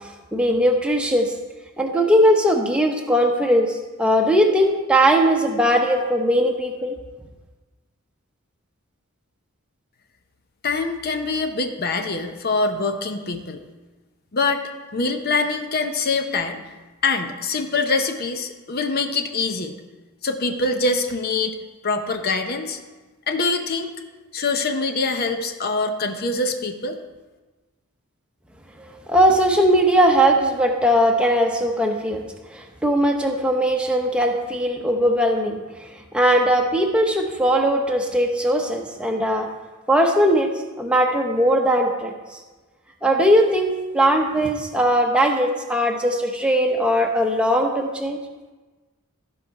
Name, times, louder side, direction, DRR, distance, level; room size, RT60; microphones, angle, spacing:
voice 1, 0.3-1.3 1.8-6.9 28.8-32.2 32.5-35.6 36.1-39.5 39.9-40.5 40.8-42.1 43.0-48.2, equal, 5° right, 2 dB, 0.9 m, -19 dB
voice 2, 10.6-13.6 14.3-16.6 17.0-19.8 20.2-21.6 21.8-22.8 23.3-23.9 24.3-27.0, left 3 dB, 45° left, 7 dB, 0.7 m, -24 dB
14.5 x 5.5 x 4.8 m, 1.2 s
head